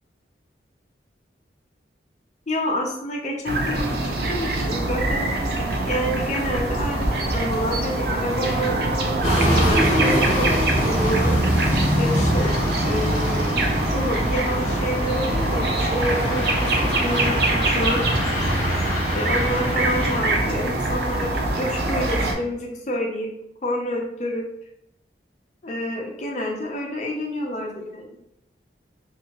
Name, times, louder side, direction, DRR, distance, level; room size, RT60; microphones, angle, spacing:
voice 1, 2.5-3.9 4.3-5.4 5.9-11.4 12.0-12.6 12.8-18.0 19.1-23.3 23.6-24.4 25.6-28.1, equal, 40° left, 1 dB, 0.5 m, -28 dB
sound 1, 3.5-22.4, right 2 dB, 60° right, 0.4 m, -24 dB
sound 2, 9.2-20.2, equal, 35° right, 1.2 m, -24 dB
2.6 x 2.6 x 2.9 m, 0.79 s
head